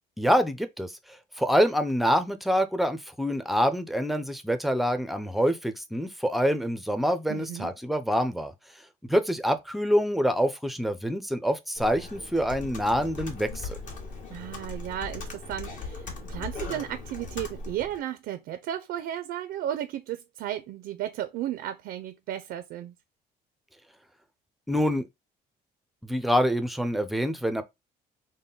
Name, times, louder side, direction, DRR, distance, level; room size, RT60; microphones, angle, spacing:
voice 1, 0.2-0.9 1.4-8.5 9.1-13.8 24.7-25.0 26.0-27.6, equal, ahead, 0.5 m, -26 dB
voice 2, 7.3-7.7 14.3-22.9, right 11 dB, 75° right, 0.5 m, -34 dB
Computer keyboard, 11.8-18.0, left 3 dB, 50° left, 1.4 m, -39 dB
3.6 x 2.2 x 3.9 m
cardioid pair, 110°, 17 cm